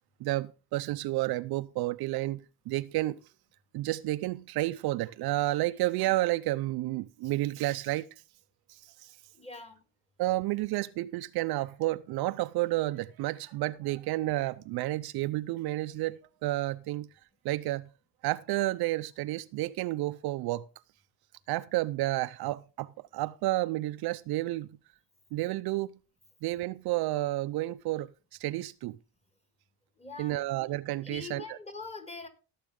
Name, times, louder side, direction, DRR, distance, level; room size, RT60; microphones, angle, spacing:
voice 1, 0.2-3.2 3.7-8.1 8.7-9.1 10.2-17.1 17.4-17.9 18.2-20.7 21.5-24.7 25.3-25.9 26.4-28.1 28.4-29.0 30.2-31.6, right 17 dB, 60° right, 0.6 m, -31 dB
voice 2, 9.3-9.8 30.0-30.4 31.0-32.3, left 4 dB, 15° left, 2.0 m, -43 dB
16.5 x 7.4 x 3.7 m
cardioid pair, 110°, 43 cm